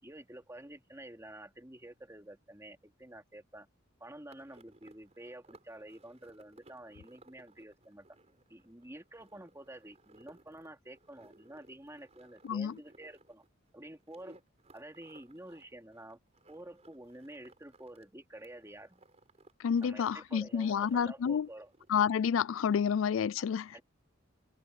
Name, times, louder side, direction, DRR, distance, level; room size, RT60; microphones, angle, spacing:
voice 1, 0.0-3.7 4.0-8.1 8.5-13.4 13.7-14.4 14.7-16.2 16.5-19.1 19.8-21.7 23.4-23.8, right 1 dB, 15° right, 2.7 m, -50 dB
sound 1, 4.3-18.0 18.3-19.9 20.1-22.1, right 2 dB, 35° right, 6.5 m, -62 dB
voice 2, 19.6-21.5 21.9-23.7, left 7 dB, 85° left, 0.4 m, -29 dB
head